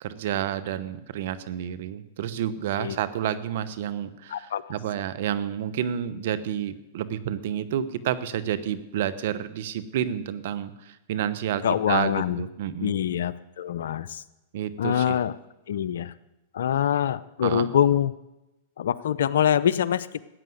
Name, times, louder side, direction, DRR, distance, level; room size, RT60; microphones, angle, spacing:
voice 1, 0.0-11.6 11.9-13.0 14.5-15.2 17.4-17.7, right 10 dB, 65° right, 14 dB, 1.0 m, -30 dB
voice 2, 4.3-4.6 11.6-12.4 12.8-14.2 14.8-15.3 15.7-16.1 16.5-18.1 18.8-20.2, left 10 dB, 75° left, 16 dB, 0.6 m, -24 dB
14.0 x 9.1 x 7.8 m, 0.96 s
hypercardioid pair, 110°, 0 cm